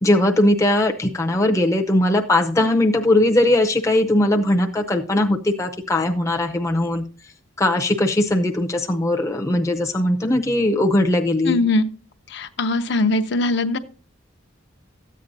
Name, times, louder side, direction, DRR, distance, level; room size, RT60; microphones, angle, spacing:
voice 1, 0.0-7.0 7.6-11.6, left 1 dB, 15° left, 2 dB, 0.6 m, -19 dB
voice 2, 11.4-11.8 12.3-13.8, left 2 dB, 60° left, 8 dB, 0.7 m, -21 dB
13.5 x 8.5 x 2.7 m, 0.37 s
head